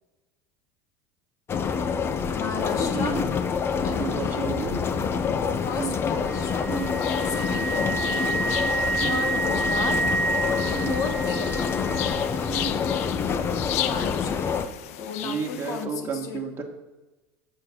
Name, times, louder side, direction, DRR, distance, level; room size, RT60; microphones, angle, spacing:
sound 1, 1.5-14.7, left 6 dB, 30° left, 0.7 m, -27 dB
voice 1, 2.3-3.3 3.8-4.4 5.6-6.8 7.2-8.3 9.0-10.0 10.8-11.9 13.8-14.6 15.0-16.6, left 5 dB, 45° left, 7 dB, 1.3 m, -34 dB
voice 2, 2.9-3.3 4.0-4.8 5.8-6.0 6.7-6.9 9.0-9.2 10.7-11.0 12.5-12.8 15.2-16.6, right 5 dB, 30° right, 0 dB, 1.5 m, -32 dB
Wind instrument woodwind instrument, 6.3-12.2, right 3 dB, 5° left, 1.5 m, -29 dB
sound 2, 6.7-15.9, left 13 dB, 85° left, 0.5 m, -36 dB
7.8 x 5.0 x 6.0 m, 1.1 s
supercardioid pair, 105°, 8 cm